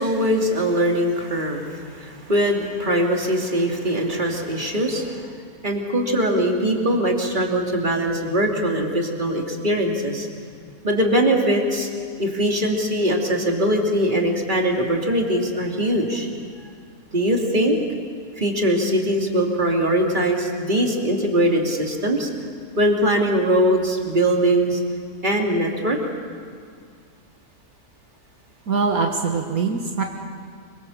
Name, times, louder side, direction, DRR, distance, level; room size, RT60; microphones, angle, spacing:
voice 1, 0.0-5.3 5.6-10.3 10.8-11.9 12.2-16.3 17.1-17.8 18.4-22.3 22.8-24.8 25.2-26.0, equal, 30° right, 1 dB, 3.0 m, -21 dB
voice 2, 28.7-30.0, right 4 dB, 70° right, 2 dB, 2.0 m, -22 dB
26.0 x 24.0 x 7.3 m, 2.1 s
omnidirectional pair, 1.6 m